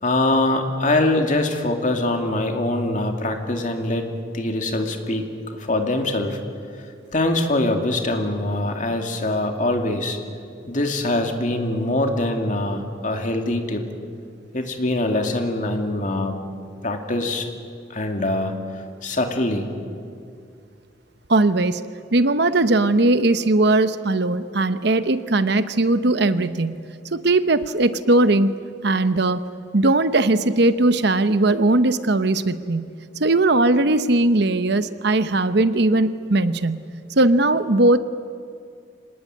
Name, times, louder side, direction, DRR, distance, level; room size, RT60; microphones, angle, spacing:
voice 1, 0.0-5.3 5.5-6.4 7.1-10.2 10.7-13.9 14.5-16.4 16.8-17.5 17.9-18.5 19.0-19.7, left 2 dB, 40° left, 4 dB, 2.4 m, -23 dB
voice 2, 21.3-21.8 22.1-26.8 27.1-28.5 28.8-29.4 29.7-32.9 33.2-36.8 37.2-38.0, right 2 dB, 60° right, 12 dB, 0.9 m, -19 dB
26.0 x 19.5 x 9.4 m, 2.3 s
head